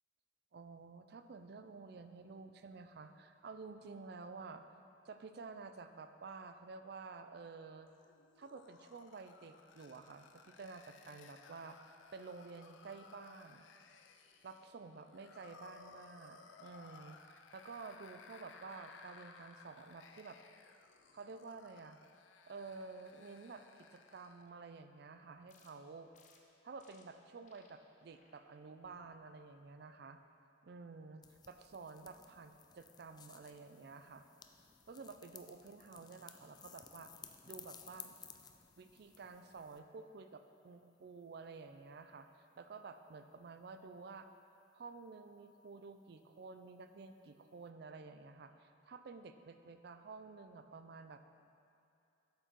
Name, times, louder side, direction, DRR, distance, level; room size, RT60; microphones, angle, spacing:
voice 1, 0.5-4.6 5.0-7.9 8.4-11.8 12.1-13.7 14.4-20.4 21.1-22.0 22.5-26.1 26.6-30.2 30.6-34.2 34.9-37.1 37.5-38.1 38.8-44.3 44.7-51.2, right 4 dB, 60° right, 9 dB, 0.4 m, -51 dB
sound 1, 7.9-24.5, left 5 dB, 90° left, 0.5 m, -60 dB
sound 2, 25.5-25.7 26.1-26.4 26.8-27.0 27.5-27.7 28.1-28.4 28.8-29.1 29.6-30.0, left 5 dB, 40° left, 0.7 m, -68 dB
sound 3, 31.2-39.8, left 8 dB, 20° left, 0.3 m, -57 dB
7.9 x 6.7 x 4.6 m, 2.7 s
head